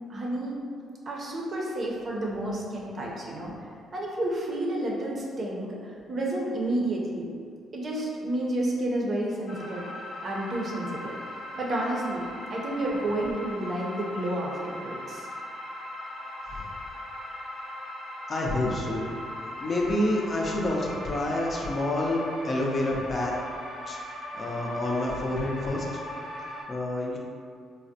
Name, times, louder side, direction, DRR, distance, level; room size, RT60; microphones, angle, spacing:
voice 1, 0.1-0.6 1.1-3.5 3.9-7.3 7.7-9.8 10.2-11.1 11.6-15.3, right 1 dB, 45° right, -3 dB, 0.6 m, -30 dB
sound 1, 9.5-26.6, left 1 dB, 85° left, 0.9 m, -39 dB
voice 2, 18.3-19.1 19.6-23.3 23.9-25.9 26.7-27.2, left 1 dB, 40° left, -2 dB, 0.5 m, -28 dB
3.3 x 2.0 x 2.7 m, 2.2 s
cardioid pair, 90°, 0 cm